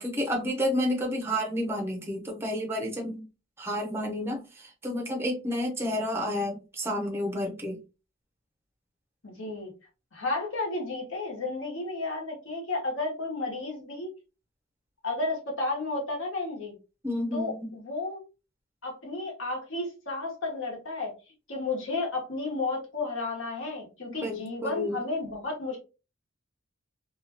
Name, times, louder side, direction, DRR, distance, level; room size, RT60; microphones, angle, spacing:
voice 1, 0.0-3.2 3.6-7.8 17.0-17.7 24.2-25.0, equal, 10° right, 0 dB, 0.6 m, -30 dB
voice 2, 9.2-9.7 10.1-14.1 15.0-16.8 17.3-18.2 18.8-21.1 21.5-25.8, left 2 dB, 65° left, -1 dB, 1.2 m, -32 dB
2.8 x 2.3 x 2.8 m, 0.31 s
head